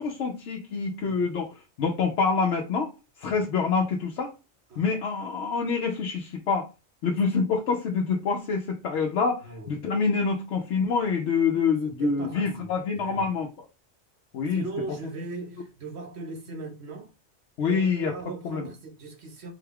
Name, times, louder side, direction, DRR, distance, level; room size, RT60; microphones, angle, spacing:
voice 1, 0.0-2.9 3.2-4.3 4.8-6.7 7.0-13.5 14.3-14.6 17.6-18.1 18.4-18.7, left 5 dB, 80° left, 0.9 m, -26 dB
voice 2, 9.4-9.9 12.0-13.3 14.5-17.1 17.6-19.5, right 3 dB, 70° right, 1.1 m, -39 dB
3.8 x 2.3 x 3.3 m
omnidirectional pair, 1.1 m